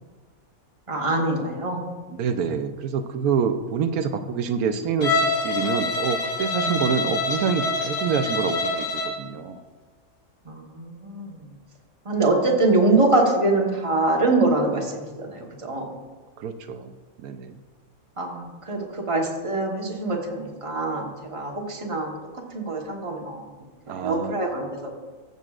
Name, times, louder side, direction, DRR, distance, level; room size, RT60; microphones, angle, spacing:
voice 1, 0.9-1.8 10.4-11.5 12.0-15.9 18.2-22.1 22.5-23.4 23.9-24.9, right 2 dB, 25° right, 0 dB, 1.3 m, -24 dB
voice 2, 2.1-9.6 16.4-16.9 17.2-17.6 23.9-24.4, right 6 dB, 85° right, 7 dB, 1.1 m, -26 dB
Bowed string instrument, 5.0-9.2, left 2 dB, 50° left, 1.6 m, -26 dB
15.0 x 6.8 x 2.4 m, 1.4 s
omnidirectional pair, 1.5 m